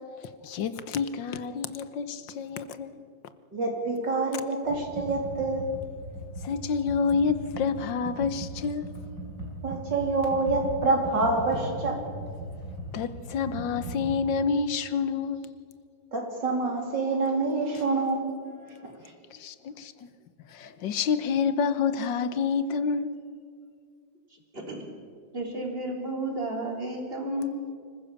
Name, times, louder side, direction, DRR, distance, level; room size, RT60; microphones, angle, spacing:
voice 1, 0.4-3.1 6.4-8.9 12.9-15.4 19.3-19.9 20.5-23.2, left 5 dB, 80° left, 13 dB, 1.7 m, -28 dB
voice 2, 3.5-5.7 9.6-12.0 16.1-18.3, right 3 dB, 70° right, 1 dB, 4.1 m, -26 dB
Computer keyboard, 4.7-14.2, right 1 dB, 90° right, 6.2 m, -38 dB
voice 3, 24.5-24.8 25.3-27.5, right 1 dB, 30° right, 1 dB, 3.7 m, -32 dB
25.0 x 15.5 x 7.1 m, 2.2 s
omnidirectional pair, 2.0 m